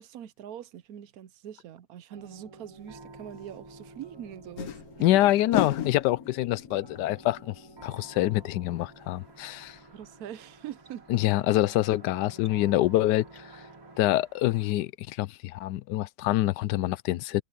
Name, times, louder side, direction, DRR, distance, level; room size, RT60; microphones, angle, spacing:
voice 1, 0.0-4.8 9.9-11.1, right 10 dB, 65° right, 1.1 m, -43 dB
sound 1, 2.1-14.3, right 2 dB, 20° right, 0.8 m, -51 dB
sound 2, 3.0-3.1 4.4-8.9 9.2-9.3 9.6-9.7, left 9 dB, 60° left, 1.4 m, -36 dB
voice 2, 5.0-7.5 7.8-9.8 11.1-13.4 14.0-17.4, left 15 dB, 80° left, 1.2 m, -26 dB
sound 3, 9.0-14.7, right 4 dB, 35° right, 2.3 m, -57 dB
omnidirectional pair, 1.8 m